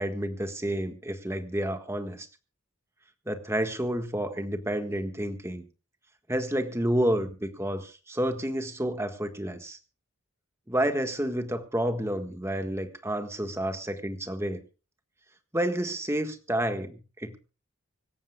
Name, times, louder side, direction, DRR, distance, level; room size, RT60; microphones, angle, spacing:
voice 1, 0.0-2.3 3.2-5.6 6.3-9.8 10.7-14.6 15.5-17.4, right 1 dB, 15° right, 6 dB, 1.6 m, -30 dB
26.0 x 14.0 x 2.3 m, 0.33 s
head